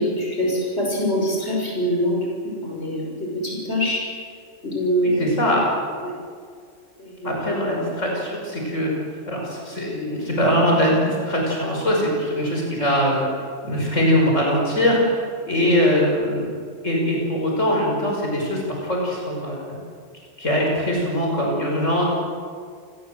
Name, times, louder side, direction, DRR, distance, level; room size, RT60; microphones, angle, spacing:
voice 1, 0.0-4.1 4.6-5.2 6.0-6.1 7.0-7.4, equal, 55° left, -1 dB, 6.2 m, -24 dB
voice 2, 5.0-5.7 7.2-8.9 9.3-13.3 13.6-16.5 16.8-19.6 20.4-22.1, equal, 70° left, -1 dB, 6.1 m, -22 dB
28.5 x 21.0 x 7.9 m, 2.1 s
omnidirectional pair, 1.3 m